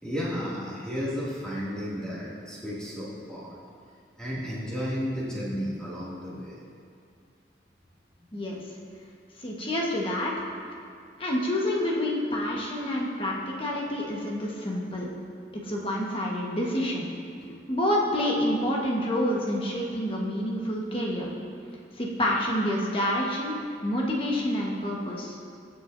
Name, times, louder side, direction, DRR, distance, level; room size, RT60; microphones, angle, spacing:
voice 1, 0.0-3.6 4.2-6.6 8.2-8.4 17.4-17.5, equal, 5° left, -9 dB, 2.4 m, -33 dB
voice 2, 8.3-8.6 9.4-10.3 11.2-15.1 15.5-17.1 17.7-21.3 21.9-23.6 23.8-25.4, left 1 dB, 30° left, -3 dB, 1.4 m, -28 dB
18.5 x 7.3 x 2.7 m, 2.3 s
head